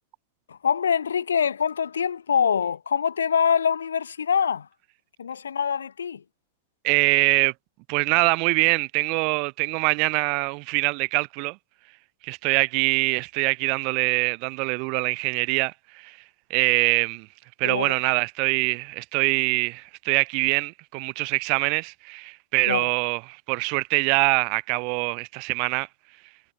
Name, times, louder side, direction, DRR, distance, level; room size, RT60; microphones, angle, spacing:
voice 1, 0.5-4.7 5.2-6.2 17.6-18.0 22.7-22.8, left 7 dB, 70° left, 1.5 m, -24 dB
voice 2, 6.8-7.5 7.9-11.6 12.2-16.2 16.5-17.3 17.6-25.9, right 36 dB, 45° right, 0.6 m, -24 dB
figure-of-eight pair, 90°, 0 cm